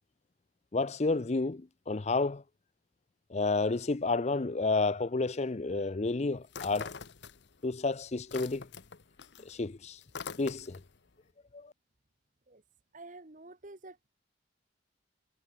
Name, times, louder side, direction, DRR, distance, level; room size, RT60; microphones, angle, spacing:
voice 1, 0.7-2.4 3.3-6.9 7.6-8.7 9.4-10.0 10.4-10.8 11.5-11.7, left 3 dB, 35° left, 0.6 m, -30 dB
sound 1, 6.5-7.7 8.0-11.0, left 5 dB, 65° left, 0.9 m, -44 dB
voice 2, 12.9-14.1, right 2 dB, 40° right, 1.3 m, -49 dB
head